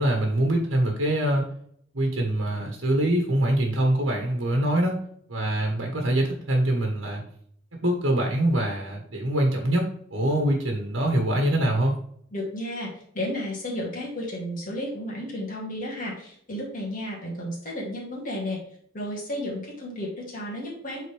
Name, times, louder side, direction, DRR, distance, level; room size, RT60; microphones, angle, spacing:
voice 1, 0.0-1.4 1.9-5.0 5.3-7.2 7.8-9.8 10.1-11.9, right 1 dB, 85° right, 0 dB, 1.6 m, -24 dB
voice 2, 12.3-18.6 18.9-21.0, left 1 dB, 45° left, -3 dB, 2.3 m, -33 dB
8.1 x 4.0 x 3.5 m, 0.64 s
head